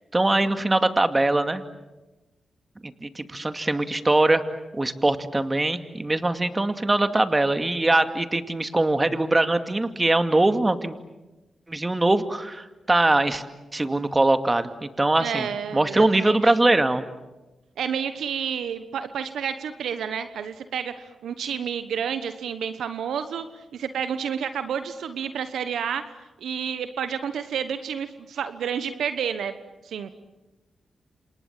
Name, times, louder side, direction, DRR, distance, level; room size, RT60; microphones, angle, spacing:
voice 1, 0.1-1.6 2.8-4.4 4.7-10.9 11.7-13.4 13.7-15.5 15.7-17.0, right 2 dB, 25° right, 9 dB, 2.3 m, -22 dB
voice 2, 15.2-16.5 17.8-30.1, right 7 dB, 80° right, 11 dB, 1.1 m, -30 dB
28.5 x 27.0 x 7.5 m, 1.1 s
supercardioid pair, 40°, 0 cm